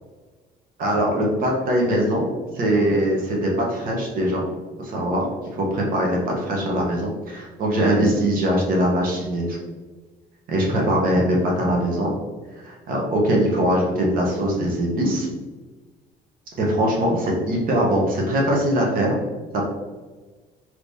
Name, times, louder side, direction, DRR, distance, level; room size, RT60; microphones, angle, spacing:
voice 1, 0.8-2.3 2.5-4.5 4.8-5.3 5.5-9.6 10.5-12.1 12.6-15.3 16.6-19.2, equal, 55° right, -1 dB, 0.9 m, -21 dB
3.4 x 3.0 x 2.6 m, 1.3 s
cardioid pair, 110°, 17 cm